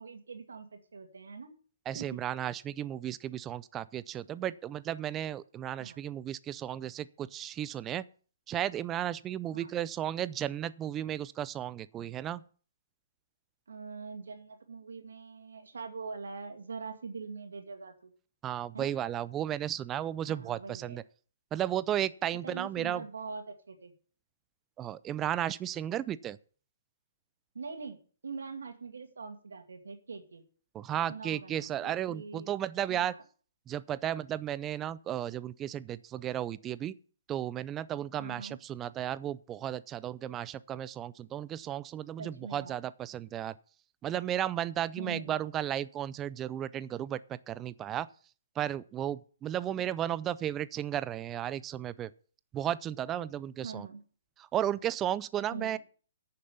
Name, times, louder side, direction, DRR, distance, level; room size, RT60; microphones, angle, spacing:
voice 1, 0.0-1.5 1.9-2.2 5.8-6.0 9.5-9.7 13.7-18.1 18.7-18.9 20.3-21.0 22.4-23.9 27.5-28.0 28.2-30.4 31.1-32.5 32.9-33.2 38.2-38.6 42.2-42.8 45.0-45.4 49.7-49.9 53.6-54.0 55.4-55.8, right 4 dB, 80° right, 2.2 m, -43 dB
voice 2, 1.9-8.0 8.5-12.4 18.4-21.0 21.5-23.0 24.8-26.4 30.7-33.1 33.7-36.9 37.3-43.5 44.0-48.1 48.6-52.1 52.5-53.9 54.4-55.8, right 11 dB, 20° right, 0.4 m, -34 dB
9.3 x 6.7 x 7.0 m
hypercardioid pair, 140°, 0 cm